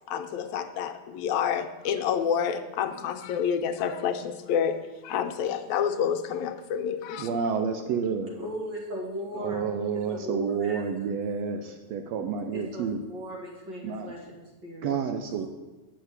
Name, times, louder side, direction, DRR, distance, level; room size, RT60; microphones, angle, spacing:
voice 1, 0.1-4.8 5.0-7.3, left 8 dB, 85° left, 7 dB, 2.0 m, -28 dB
voice 2, 7.2-8.3 9.4-13.0 13.8-14.1 14.8-15.5, right 6 dB, 75° right, 6 dB, 1.7 m, -29 dB
voice 3, 8.4-9.6 9.9-11.1 12.5-15.0 15.3-15.5, equal, 40° right, -2 dB, 2.6 m, -38 dB
9.3 x 6.1 x 8.2 m, 1.2 s
omnidirectional pair, 3.4 m